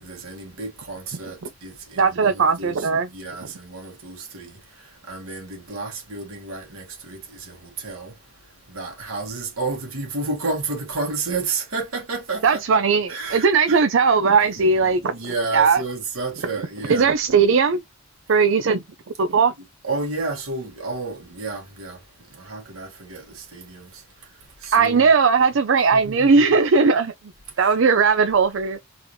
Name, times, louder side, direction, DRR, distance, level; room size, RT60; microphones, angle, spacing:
voice 1, 0.0-4.5 5.1-8.1 8.7-12.8 13.1-13.8 14.5-17.1 19.8-22.0 22.4-23.9 24.6-25.1 25.9-26.6, right 3 dB, 75° right, 1.8 m, -31 dB
voice 2, 2.0-3.1 12.4-15.1 15.5-15.8 16.9-17.8 18.3-18.8 19.2-19.5 24.7-27.1 27.6-28.8, right 5 dB, 60° right, 0.4 m, -18 dB
4.0 x 2.7 x 3.1 m
head